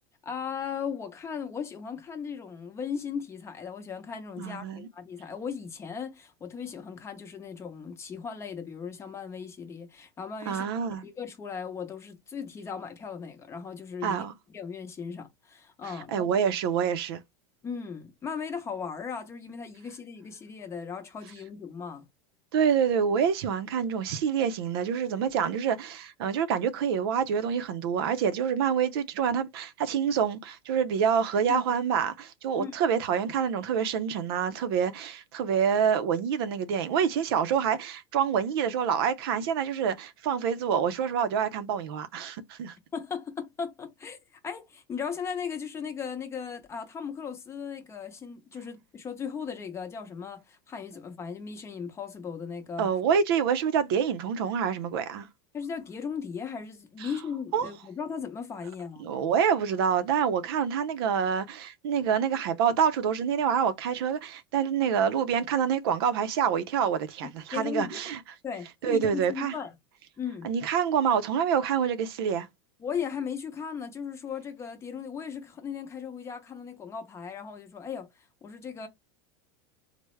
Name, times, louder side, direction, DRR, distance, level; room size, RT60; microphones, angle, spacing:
voice 1, 0.2-10.7 11.0-14.3 14.5-16.3 17.6-22.0 31.5-31.6 32.6-32.7 42.9-52.9 55.5-59.1 67.2-68.0 68.4-69.7 70.2-70.5 72.8-78.9, left 6 dB, 20° left, 0.7 m, -37 dB
voice 2, 4.4-4.9 10.5-11.0 14.0-14.3 16.1-17.2 22.5-42.8 52.8-55.3 57.0-57.1 57.5-57.7 59.0-68.2 68.8-69.5 70.4-72.5, right 7 dB, 70° right, 0.5 m, -27 dB
3.4 x 2.0 x 3.1 m
supercardioid pair, 130°, 13 cm